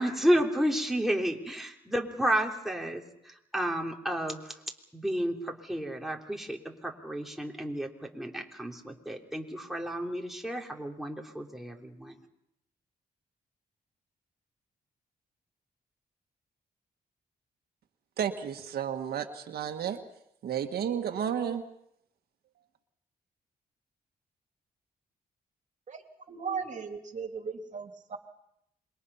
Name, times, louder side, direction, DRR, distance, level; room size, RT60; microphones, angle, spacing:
voice 1, 0.0-4.6 4.9-12.1, equal, ahead, 0 dB, 3.4 m, -31 dB
voice 2, 18.2-20.0 20.4-21.6, right 8 dB, 85° right, 6 dB, 1.6 m, -32 dB
voice 3, 26.3-28.2, right 5 dB, 50° right, 4 dB, 2.9 m, -37 dB
27.0 x 23.0 x 5.6 m, 0.78 s
cardioid pair, 105°, 16 cm